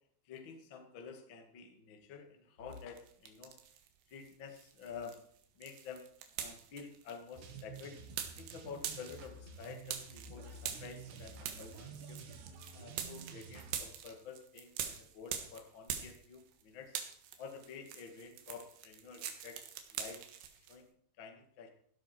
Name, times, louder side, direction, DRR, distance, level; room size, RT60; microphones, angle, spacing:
voice 1, 0.2-3.6 4.1-5.2 5.5-6.1 6.4-8.0 8.3-12.2 12.7-17.0 17.4-19.6 19.9-20.2 20.7-20.9 21.2-21.7, left 6 dB, 70° left, 4 dB, 1.1 m, -50 dB
sound 1, 2.7-3.9 4.2-16.6 16.9-20.8, right 9 dB, 80° right, 3.9 m, -44 dB
sound 2, 7.4-13.8, right 5 dB, 65° right, 3.4 m, -50 dB
16.0 x 12.0 x 4.5 m, 0.62 s
omnidirectional pair, 5.7 m